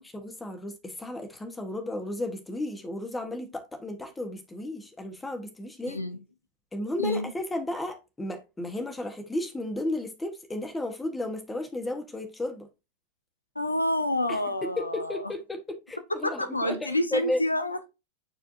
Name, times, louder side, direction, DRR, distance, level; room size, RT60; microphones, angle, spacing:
voice 1, 0.0-6.0 6.7-12.7 14.3-17.4, left 1 dB, 10° left, 1.5 m, -33 dB
voice 2, 5.9-6.2 7.0-7.3 13.6-15.2 16.2-17.9, left 1 dB, 85° left, 0.7 m, -28 dB
9.3 x 4.4 x 2.8 m
figure-of-eight pair, 90°, 0 cm